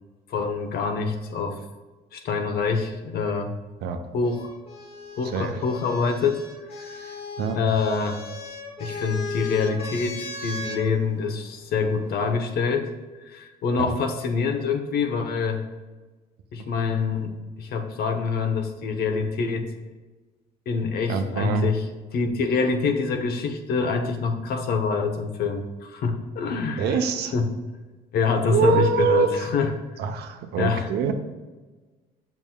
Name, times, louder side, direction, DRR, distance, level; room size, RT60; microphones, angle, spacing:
voice 1, 0.3-1.6 2.1-3.6 4.1-4.5 5.2-6.4 6.7-7.2 7.5-8.2 8.8-12.9 13.3-15.6 16.5-19.7 20.7-21.8 22.1-27.0 27.3-27.5 28.1-29.7 30.6-30.9, left 5 dB, 65° left, 6 dB, 0.9 m, -25 dB
sound 1, 4.2-10.8 12.0-12.6, left 3 dB, 35° left, 1.0 m, -37 dB
voice 2, 5.2-5.6 7.4-7.7 13.8-13.9 16.6-16.7 21.1-21.7 26.8-27.3 28.4-29.5 30.0-31.1, right 6 dB, 75° right, 6 dB, 0.7 m, -24 dB
7.2 x 6.0 x 2.3 m, 1.3 s
cardioid pair, 110°, 17 cm